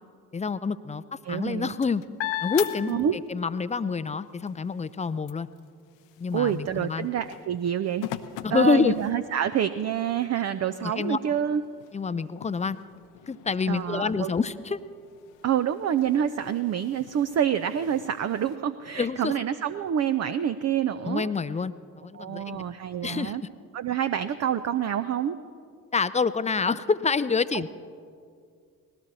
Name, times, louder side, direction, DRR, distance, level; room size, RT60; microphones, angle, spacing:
voice 1, 0.3-1.0 1.3-2.0 2.4-5.5 6.2-7.1 8.4-8.9 10.8-11.2 11.9-12.8 13.3-14.8 19.0-19.3 21.1-22.6 23.0-23.4 25.9-27.7, left 5 dB, 15° left, 13 dB, 0.5 m, -27 dB
voice 2, 1.2-1.8 2.9-3.2 6.3-8.1 8.5-11.6 13.7-14.3 15.4-21.3 22.1-23.4 23.7-25.4 27.5-27.7, right 9 dB, 35° right, 11 dB, 0.6 m, -27 dB
sound 1, 1.3-3.6 4.1-9.5 10.1-10.2 10.6-18.6, left 13 dB, 65° left, 0.8 m, -41 dB
20.0 x 17.5 x 4.1 m, 2.2 s
hypercardioid pair, 50°, 46 cm